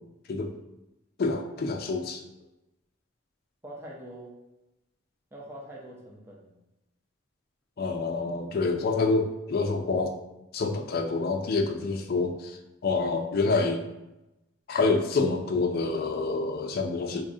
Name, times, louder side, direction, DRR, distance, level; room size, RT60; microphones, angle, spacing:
voice 1, 1.2-2.2 7.8-10.1 10.5-13.8 14.7-17.2, left 3 dB, 50° left, 5 dB, 0.4 m, -27 dB
voice 2, 3.6-4.4 5.3-6.6, right 1 dB, 10° right, -3 dB, 0.6 m, -44 dB
4.1 x 2.4 x 2.6 m, 0.95 s
head